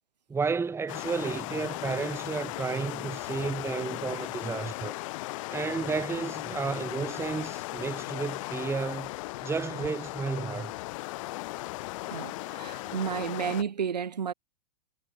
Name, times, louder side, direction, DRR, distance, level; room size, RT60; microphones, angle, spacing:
voice 1, 0.3-5.0 5.5-9.1 9.4-10.7, right 5 dB, 10° right, 2.0 m, -32 dB
sound 1, 0.9-13.6, left 21 dB, 50° left, 0.7 m, -37 dB
voice 2, 12.1-14.3, right 7 dB, 85° right, 4.0 m, -32 dB
hypercardioid pair, 115°, 21 cm